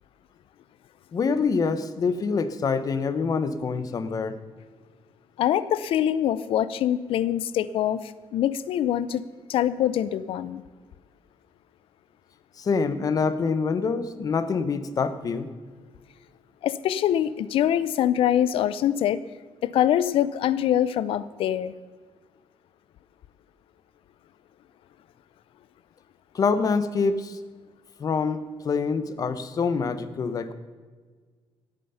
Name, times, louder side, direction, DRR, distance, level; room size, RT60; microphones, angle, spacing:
voice 1, 1.1-4.3 12.6-15.5 26.3-27.4 28.0-30.5, left 5 dB, 40° left, 12 dB, 1.0 m, -25 dB
voice 2, 5.4-9.2 9.5-10.6 16.6-19.2 19.6-21.7, left 11 dB, 75° left, 17 dB, 0.5 m, -24 dB
16.0 x 9.1 x 5.7 m, 1.5 s
cardioid pair, 135°, 9 cm